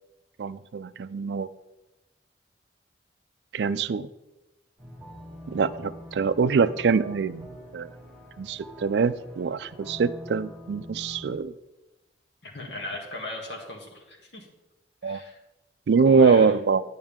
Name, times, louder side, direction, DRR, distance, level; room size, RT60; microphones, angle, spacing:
voice 1, 0.4-1.5 3.5-4.1 5.5-7.5 7.7-7.9 8.4-11.5 15.0-15.2 15.9-16.8, right 5 dB, 75° right, 0.4 m, -23 dB
sound 1, 4.8-11.3, left 1 dB, ahead, 3.7 m, -45 dB
voice 2, 12.4-14.5 15.0-15.4 16.0-16.5, left 2 dB, 75° left, 2.2 m, -37 dB
9.6 x 9.1 x 3.6 m
head